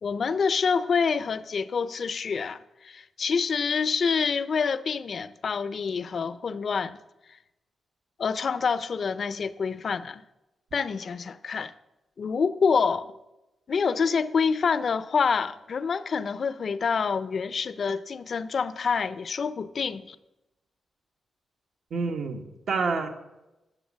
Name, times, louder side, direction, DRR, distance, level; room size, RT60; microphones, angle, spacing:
voice 1, 0.0-7.0 8.2-10.2 10.7-11.7 12.2-13.1 13.7-20.2, left 5 dB, 55° left, 0.5 m, -27 dB
voice 2, 21.9-23.1, right 4 dB, 70° right, 1.4 m, -28 dB
10.5 x 7.0 x 7.3 m
cardioid pair, 95°, 0 cm